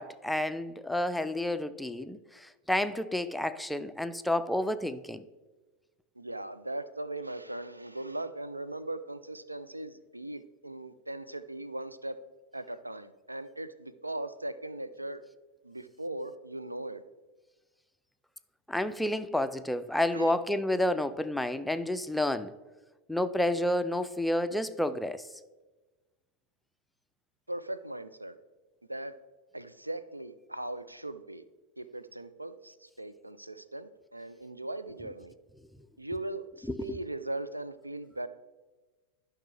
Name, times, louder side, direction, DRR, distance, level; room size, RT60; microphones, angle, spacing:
voice 1, 0.0-5.2 18.7-22.5 23.1-25.2 36.7-37.0, left 1 dB, 5° left, 0.4 m, -30 dB
voice 2, 6.2-12.2 12.5-15.2 15.6-17.0 20.1-20.4 27.5-28.3 28.9-29.1 29.5-31.4 31.8-35.3 36.0-38.3, right 1 dB, 85° right, 0.4 m, -39 dB
12.0 x 5.8 x 3.2 m
figure-of-eight pair, 90°, 0 cm